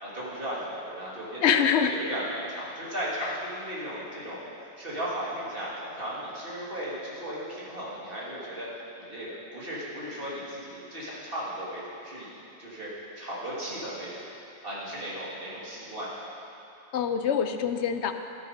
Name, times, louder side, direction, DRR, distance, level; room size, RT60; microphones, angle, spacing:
voice 1, 0.0-4.5 4.8-8.7 9.0-12.9 13.2-14.3 14.6-16.1, equal, 55° right, -7 dB, 2.9 m, -36 dB
voice 2, 1.4-1.9 16.9-18.1, left 7 dB, 80° left, 8 dB, 1.0 m, -24 dB
13.0 x 10.0 x 5.2 m, 2.8 s
omnidirectional pair, 1.1 m